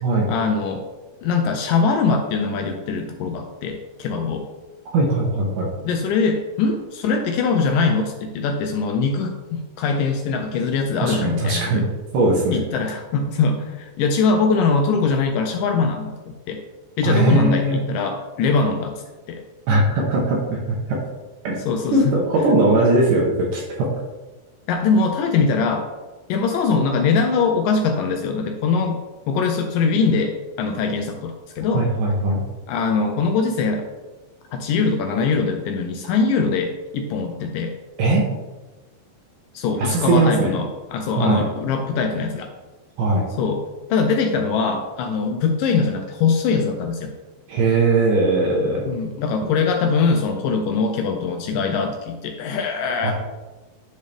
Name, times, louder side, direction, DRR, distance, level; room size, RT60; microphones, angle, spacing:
voice 1, 0.3-0.8 1.2-4.5 5.8-11.9 12.5-16.6 17.0-19.0 19.3-19.4 21.7-22.2 24.7-25.9 26.3-29.0 29.3-31.9 32.7-33.9 34.5-37.7 39.5-42.5 43.4-47.1 48.9-53.1, left 4 dB, 80° left, 4 dB, 2.0 m, -22 dB
voice 2, 4.9-5.7 11.0-11.8 12.1-12.6 17.0-17.8 19.7-21.0 21.4-21.6 21.9-23.9 31.7-32.4 38.0-38.3 39.8-40.5 41.2-41.4 43.0-43.3 47.5-48.8 53.0-53.1, right 2 dB, 70° right, -3 dB, 2.4 m, -19 dB
10.5 x 4.0 x 3.4 m, 1.2 s
omnidirectional pair, 4.3 m